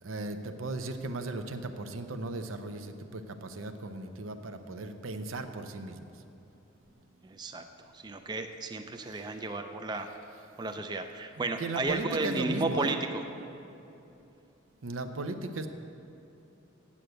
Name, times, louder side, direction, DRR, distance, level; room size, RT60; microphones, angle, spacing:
voice 1, 0.0-6.2 7.3-7.7 9.0-9.4 11.4-13.0 14.8-15.7, right 2 dB, 85° right, 7 dB, 0.7 m, -37 dB
voice 2, 7.2-7.7 7.9-10.1 10.6-13.2, right 2 dB, 20° right, 6 dB, 0.4 m, -33 dB
8.5 x 8.0 x 7.7 m, 2.9 s
head